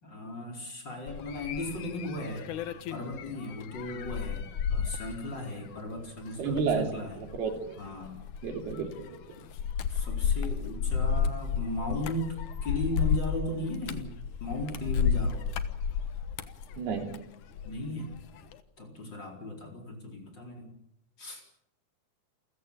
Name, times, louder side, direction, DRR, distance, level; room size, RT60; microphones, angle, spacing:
voice 1, 0.0-2.5 2.9-7.2 7.8-8.2 9.4-9.5 9.9-14.1 14.4-15.4 17.6-18.1 18.8-20.7 21.2-21.4, left 1 dB, 30° left, 3 dB, 4.8 m, -36 dB
sound 1, 1.1-17.8 18.1-18.6, left 7 dB, 65° left, 2.4 m, -32 dB
voice 2, 6.4-6.9 7.2-7.8 8.4-9.2 16.8-17.1, right 5 dB, 90° right, 5 dB, 5.1 m, -31 dB
29.0 x 16.0 x 8.7 m, 0.75 s
omnidirectional pair, 4.4 m